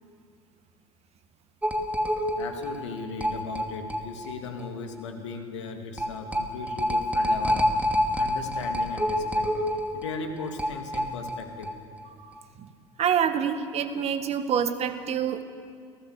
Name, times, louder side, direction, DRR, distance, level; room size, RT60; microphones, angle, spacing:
sound 1, 1.6-4.3 4.6-4.7 5.0-5.1 6.0-11.7 12.0-12.1 12.4-12.5, equal, 10° right, 2.6 m, -27 dB
voice 1, 2.4-9.5 9.9-11.7, left 4 dB, 75° left, 4 dB, 2.8 m, -37 dB
voice 2, 13.0-15.4, right 8 dB, 45° right, 9 dB, 2.0 m, -26 dB
29.5 x 18.0 x 6.8 m, 2.3 s
hypercardioid pair, 70°, 15 cm